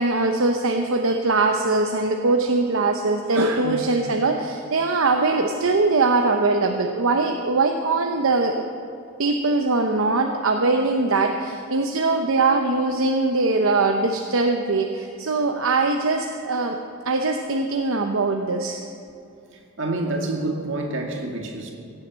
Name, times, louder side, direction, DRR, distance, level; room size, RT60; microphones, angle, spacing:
voice 1, 0.0-8.5 9.2-16.8 17.0-18.8, right 3 dB, 75° right, 4 dB, 0.8 m, -21 dB
voice 2, 19.5-21.7, right 2 dB, 60° right, 1 dB, 2.1 m, -28 dB
16.0 x 7.7 x 7.4 m, 2.6 s
head